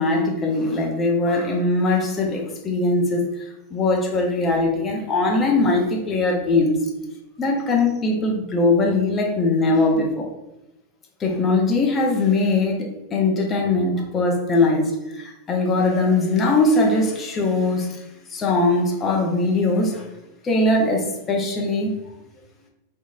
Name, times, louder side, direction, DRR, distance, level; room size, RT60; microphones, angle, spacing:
voice 1, 0.0-6.8 7.4-10.3 11.2-18.0 18.3-20.1 20.4-21.9, left 2 dB, 25° left, 0 dB, 0.7 m, -21 dB
3.4 x 3.1 x 2.6 m, 0.93 s
figure-of-eight pair, 90°, 0 cm